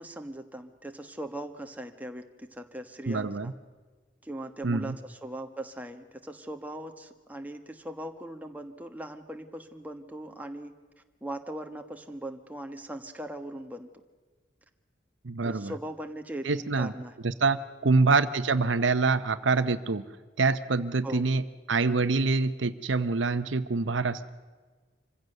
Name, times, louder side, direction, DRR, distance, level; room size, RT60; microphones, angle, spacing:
voice 1, 0.0-3.5 4.2-10.7 11.2-13.9 15.4-17.1 17.8-18.1 21.0-21.2, right 1 dB, 10° right, 5 dB, 1.3 m, -40 dB
voice 2, 3.1-3.5 4.6-4.9 15.2-15.7 16.4-16.9 17.2-20.0 20.4-24.3, right 3 dB, 80° right, 13 dB, 0.8 m, -26 dB
25.5 x 16.0 x 6.7 m, 1.4 s
head